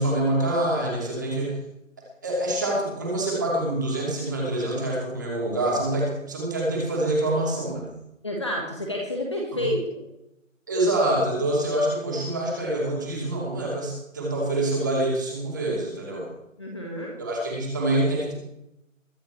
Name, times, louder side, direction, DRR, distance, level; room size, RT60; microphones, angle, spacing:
voice 1, 0.0-1.6 2.2-7.9 9.5-9.7 10.7-16.3 17.2-18.3, right 1 dB, 15° right, -3 dB, 2.8 m, -26 dB
voice 2, 8.2-10.0 16.6-17.1, left 1 dB, 20° left, -1 dB, 1.6 m, -29 dB
22.5 x 8.5 x 4.5 m, 0.85 s
figure-of-eight pair, 175°, 40 cm